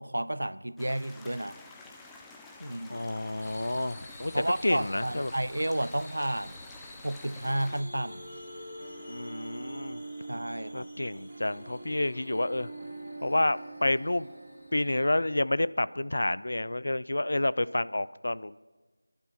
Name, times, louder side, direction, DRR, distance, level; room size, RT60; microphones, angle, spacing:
voice 1, 0.0-1.5 2.7-3.1 4.3-6.5 7.0-8.2 10.3-10.9, right 1 dB, 80° right, 17 dB, 0.4 m, -31 dB
sound 1, 0.8-7.8, left 3 dB, 5° left, 0.5 m, -50 dB
voice 2, 2.6-4.3 4.6-5.3 9.1-10.0 10.7-12.7 13.2-14.3 14.7-18.6, left 1 dB, 65° left, 18 dB, 0.3 m, -29 dB
sound 2, 3.4-15.0, left 1 dB, 30° left, 1.8 m, -52 dB
sound 3, 7.3-15.3, right 2 dB, 20° right, 2.5 m, -44 dB
27.5 x 11.0 x 3.0 m, 1.3 s
figure-of-eight pair, 170°, 0 cm